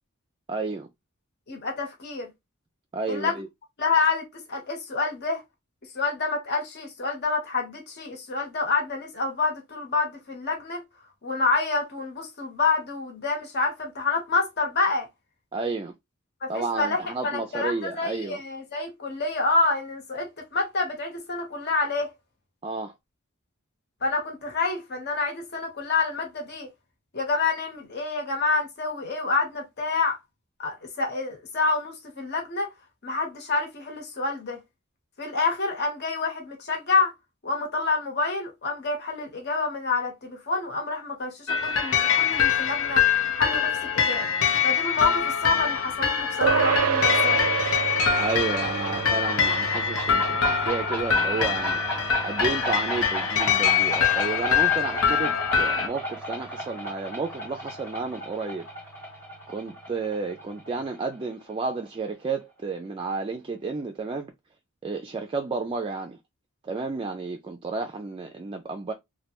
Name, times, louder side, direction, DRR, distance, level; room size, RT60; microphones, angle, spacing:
voice 1, 0.5-0.9 2.9-3.5 15.5-15.9 16.5-18.4 22.6-22.9 48.2-51.8 52.2-58.7 59.5-64.3 64.8-66.2 66.6-68.9, right 4 dB, 25° right, 0.3 m, -31 dB
voice 2, 1.5-2.3 3.1-3.4 3.8-5.4 5.9-10.8 11.2-15.1 16.4-22.1 24.0-26.7 27.1-30.2 30.6-32.7 33.0-34.6 35.2-37.1 37.4-43.0 43.3-44.3 44.6-47.4, left 3 dB, 50° left, 1.0 m, -28 dB
sound 1, 41.5-55.9, left 7 dB, 80° left, 0.7 m, -24 dB
sound 2, 46.4-56.1, right 7 dB, 90° right, 0.4 m, -31 dB
sound 3, 48.2-61.6, equal, 10° left, 1.0 m, -35 dB
3.1 x 2.2 x 2.9 m
head